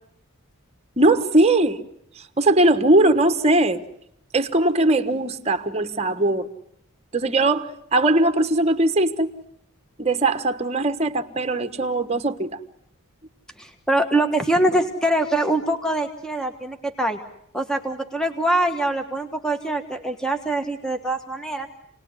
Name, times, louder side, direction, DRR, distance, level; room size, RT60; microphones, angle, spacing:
voice 1, 1.0-1.8 2.2-3.8 4.3-6.5 7.1-9.3 10.0-12.6, right 2 dB, 30° right, 1.3 m, -20 dB
voice 2, 13.6-17.2 17.5-21.7, right 1 dB, 5° left, 1.3 m, -23 dB
28.5 x 19.5 x 9.7 m
head